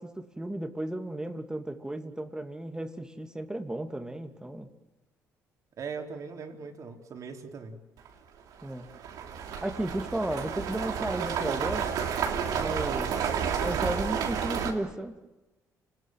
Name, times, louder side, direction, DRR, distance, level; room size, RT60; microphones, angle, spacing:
voice 1, 0.0-4.7 8.6-9.0 9.6-11.9 12.6-15.1, right 1 dB, 10° right, 7 dB, 2.8 m, -34 dB
voice 2, 5.8-7.8, right 5 dB, 55° right, 4 dB, 4.4 m, -40 dB
sound 1, 8.0-8.1 8.6-14.7, right 7 dB, 75° right, 3.2 m, -31 dB
30.0 x 20.0 x 7.8 m, 1.1 s
supercardioid pair, 75°, 7 cm